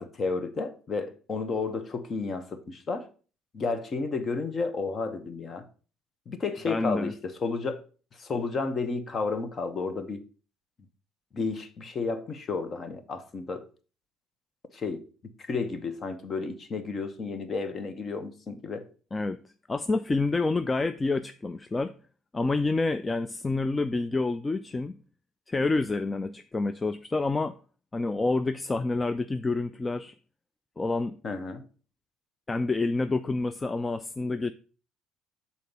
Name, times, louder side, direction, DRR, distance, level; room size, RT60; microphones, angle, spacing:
voice 1, 0.0-3.1 3.5-5.6 6.3-7.8 8.2-10.2 11.3-13.6 14.7-15.0 15.5-18.9 31.2-31.6, left 4 dB, 40° left, 1.0 m, -32 dB
voice 2, 6.7-7.1 19.1-19.4 19.7-21.9 22.3-25.0 25.5-27.5 27.9-30.2 30.8-31.2 32.5-34.5, left 3 dB, 20° left, 0.3 m, -28 dB
6.5 x 4.2 x 5.4 m
cardioid pair, 110°, 0 cm